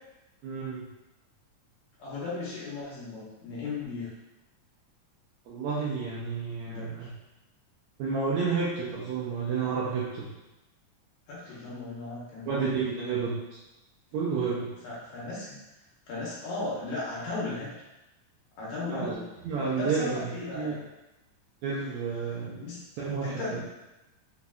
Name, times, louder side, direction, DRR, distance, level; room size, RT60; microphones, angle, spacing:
voice 1, 0.4-0.9 5.5-7.1 8.0-10.3 12.5-13.4 14.1-14.7 18.8-19.1 19.4-20.8 21.6-22.7 23.0-23.6, right 5 dB, 75° right, -6 dB, 1.8 m, -30 dB
voice 2, 2.0-4.1 6.7-7.1 11.3-12.6 14.8-15.6 16.1-17.7 18.6-19.2 19.7-20.8 22.6-23.6, left 3 dB, 70° left, -7 dB, 2.2 m, -36 dB
5.5 x 3.6 x 2.3 m, 0.99 s
omnidirectional pair, 3.8 m